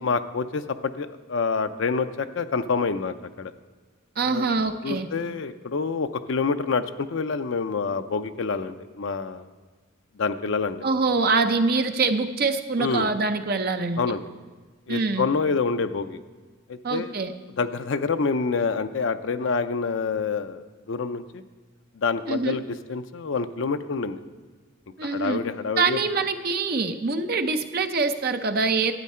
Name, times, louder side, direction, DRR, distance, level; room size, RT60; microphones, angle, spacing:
voice 1, 0.0-3.5 4.2-4.5 4.8-9.5 10.2-10.8 12.8-13.1 14.0-14.2 14.9-16.2 16.7-17.1 17.6-21.4 21.9-24.2 25.0-26.0, left 4 dB, 65° left, 10 dB, 0.5 m, -27 dB
voice 2, 4.2-5.1 10.8-14.0 14.9-15.3 16.8-17.3 22.3-22.6 25.0-25.4 25.8-28.9, right 4 dB, 45° right, 8 dB, 0.6 m, -24 dB
12.0 x 8.4 x 4.3 m, 1.4 s
head